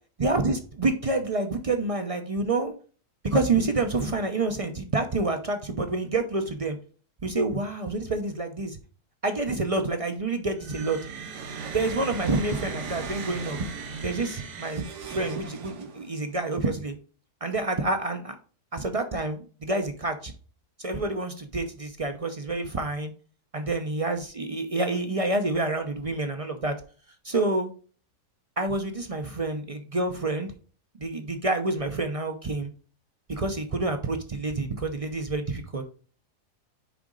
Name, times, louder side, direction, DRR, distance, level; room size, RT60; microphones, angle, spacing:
voice 1, 0.2-2.7 3.2-6.8 7.2-8.8 9.2-11.0 11.7-13.7 14.0-16.9 17.4-18.4 18.7-20.3 20.8-23.1 23.5-26.7 27.2-27.7 28.6-30.5 31.0-32.7 33.3-35.8, right 2 dB, 50° right, 6 dB, 0.4 m, -28 dB
sound 1, 10.5-16.2, right 5 dB, 80° right, 1.8 m, -37 dB
6.8 x 4.9 x 3.8 m, 0.40 s
omnidirectional pair, 1.7 m